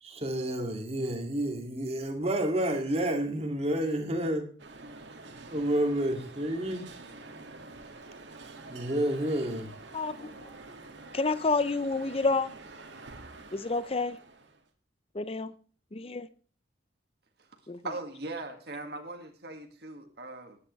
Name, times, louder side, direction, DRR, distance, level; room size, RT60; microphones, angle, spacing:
voice 1, 0.0-4.5 5.5-6.9 8.7-9.7, right 1 dB, 35° right, 2.3 m, -30 dB
sound 1, 4.6-14.6, right 3 dB, 80° right, 2.0 m, -47 dB
voice 2, 9.9-10.5 11.1-12.5 13.5-14.2 15.1-15.5 15.9-16.3 17.7-17.8, left 3 dB, 35° left, 0.6 m, -29 dB
voice 3, 17.4-20.6, right 2 dB, 60° right, 1.8 m, -40 dB
19.5 x 9.8 x 3.2 m
head